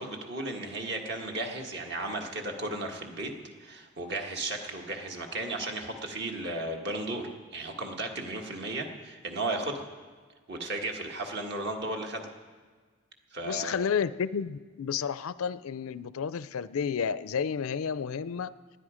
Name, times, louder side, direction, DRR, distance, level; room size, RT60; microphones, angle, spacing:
voice 1, 0.0-3.3 3.6-9.8 10.5-12.3 13.3-13.9, right 2 dB, 50° right, 2 dB, 1.6 m, -35 dB
voice 2, 13.4-18.5, left 7 dB, 85° left, 16 dB, 0.4 m, -31 dB
19.5 x 12.5 x 5.1 m, 1.5 s
head